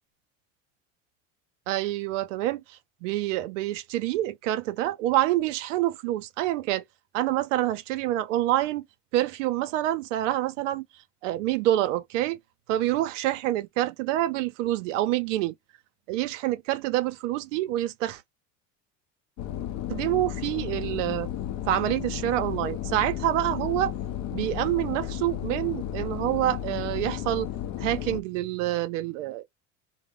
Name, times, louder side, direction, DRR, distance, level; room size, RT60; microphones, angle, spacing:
voice 1, 1.7-6.8 7.1-8.9 9.1-10.8 11.2-12.4 12.7-15.5 16.1-18.2 19.9-21.3 21.6-23.9 24.3-27.5 27.8-29.4, right 14 dB, 90° right, 0.5 m, -27 dB
sound 1, 19.4-28.2, left 11 dB, 50° left, 0.5 m, -33 dB
2.2 x 2.0 x 3.2 m
supercardioid pair, 100°, 36 cm